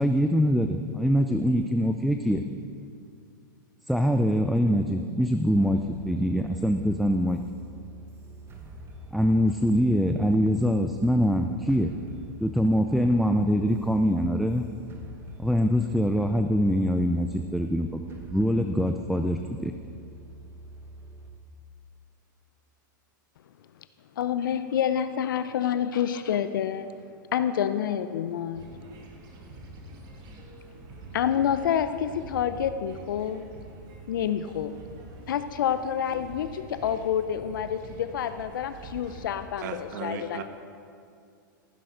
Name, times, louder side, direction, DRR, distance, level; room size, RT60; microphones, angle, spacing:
voice 1, 0.0-2.4 3.9-7.4 9.1-11.9 12.4-14.6 15.4-18.0 18.3-19.7, equal, ahead, 6 dB, 0.4 m, -24 dB
sound 1, 5.5-21.3, left 2 dB, 20° right, 1.4 m, -45 dB
voice 2, 24.2-26.9 27.3-28.6 31.1-33.4 34.1-34.7 35.3-40.4, left 9 dB, 75° left, 11 dB, 0.5 m, -28 dB
sound 2, 28.5-39.5, right 2 dB, 40° right, 1.6 m, -45 dB
voice 3, 39.6-40.4, right 6 dB, 60° right, 8 dB, 1.2 m, -35 dB
15.0 x 7.7 x 5.0 m, 2.4 s
hypercardioid pair, 120°, 11 cm